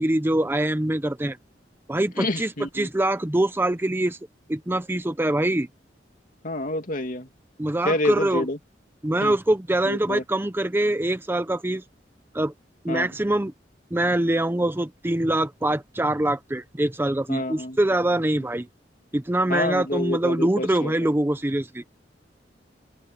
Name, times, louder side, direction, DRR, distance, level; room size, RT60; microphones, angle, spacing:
voice 1, 0.0-1.4 1.9-4.2 4.5-5.7 7.6-8.5 9.0-11.8 12.3-12.5 12.8-13.5 13.9-18.7 19.1-21.8, right 1 dB, 15° right, 0.6 m, -24 dB
voice 2, 2.2-2.9 6.4-7.3 7.8-8.6 9.2-9.4 9.8-10.2 12.9-13.1 17.3-17.8 19.5-21.1, left 1 dB, 50° left, 2.6 m, -28 dB
open air
head